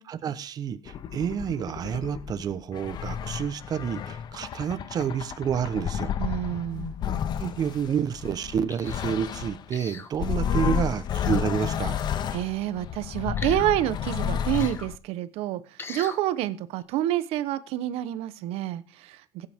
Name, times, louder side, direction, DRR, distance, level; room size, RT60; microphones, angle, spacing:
voice 1, 0.0-6.1 7.1-12.0, right 8 dB, 40° right, 12 dB, 1.0 m, -29 dB
sound 1, 0.9-9.7 10.1-15.0, left 8 dB, 45° left, 0.7 m, -31 dB
voice 2, 6.2-6.9 12.3-19.5, right 13 dB, 70° right, 13 dB, 1.0 m, -28 dB
sound 2, 8.7-9.1 9.7-10.1 11.0-11.4 13.4-13.7 14.5-14.9 15.8-16.2 16.8-16.9, left 4 dB, 20° left, 1.2 m, -40 dB
16.5 x 8.9 x 3.6 m, 0.37 s
cardioid pair, 140°, 10 cm